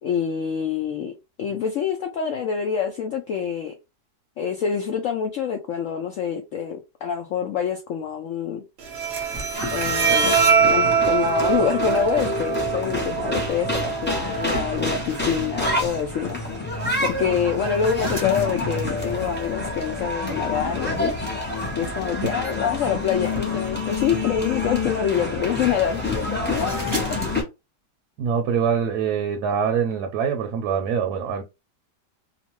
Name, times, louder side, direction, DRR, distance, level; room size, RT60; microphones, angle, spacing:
voice 1, 0.0-1.1 1.4-3.7 4.4-8.6 9.7-16.4 16.7-21.1 21.8-27.2, left 7 dB, 80° left, 0.7 m, -26 dB
Bowed string instrument, 8.8-15.8, right 6 dB, 55° right, 0.8 m, -24 dB
sound 1, 9.1-27.3, equal, 15° right, 0.7 m, -41 dB
sound 2, 9.5-27.4, left 2 dB, 15° left, 0.4 m, -28 dB
voice 2, 28.2-31.4, right 7 dB, 75° right, 1.1 m, -24 dB
2.9 x 2.1 x 2.9 m
omnidirectional pair, 1.9 m